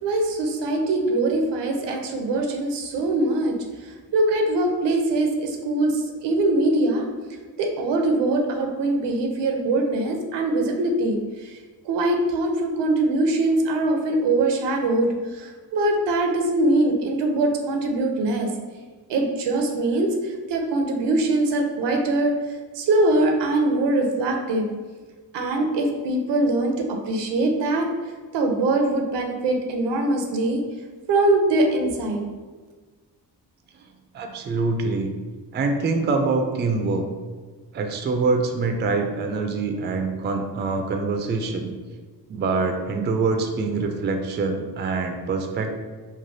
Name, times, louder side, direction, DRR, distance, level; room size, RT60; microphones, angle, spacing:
voice 1, 0.0-3.6 3.8-7.1 7.6-11.6 11.8-18.5 19.1-22.3 22.7-24.6 25.3-27.9 28.3-30.6 31.1-32.2, right 2 dB, 80° right, 3 dB, 0.6 m, -22 dB
voice 2, 34.1-35.1 35.5-37.0 37.7-41.7 42.3-45.7, right 3 dB, 30° right, 5 dB, 0.3 m, -24 dB
3.2 x 2.3 x 2.6 m, 1.4 s
cardioid pair, 70°, 41 cm